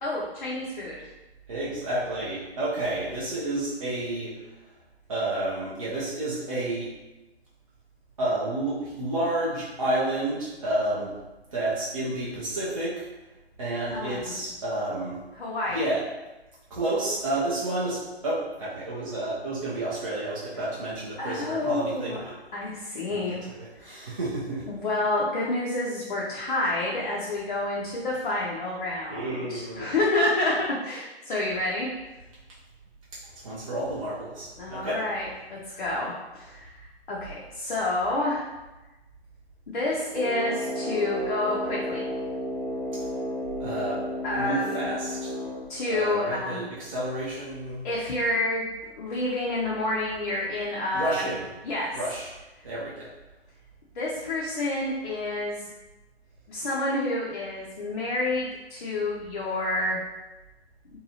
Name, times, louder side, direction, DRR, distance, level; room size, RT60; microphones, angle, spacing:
voice 1, 0.0-1.1 13.9-14.4 15.4-15.9 21.2-22.2 22.5-24.1 24.7-31.9 34.6-38.5 39.7-42.0 44.2-44.8 45.7-46.7 47.8-48.7 48.9-51.3 51.6-52.0 53.9-55.6 56.5-60.0, left 2 dB, 50° left, -5 dB, 0.5 m, -29 dB
voice 2, 1.5-4.3 5.1-6.9 8.2-11.1 11.5-13.1 13.6-15.2 15.7-16.0 16.7-22.3 23.1-23.2 23.6-24.6 29.1-29.9 33.4-35.0 43.6-44.0 44.3-45.3 45.9-47.8 50.9-51.5 51.9-52.3 52.6-53.1, right 1 dB, 35° right, -8 dB, 0.5 m, -30 dB
Brass instrument, 40.1-45.7, equal, 60° right, 0.9 m, -32 dB
2.7 x 2.2 x 2.8 m, 1.1 s
figure-of-eight pair, 140°, 32 cm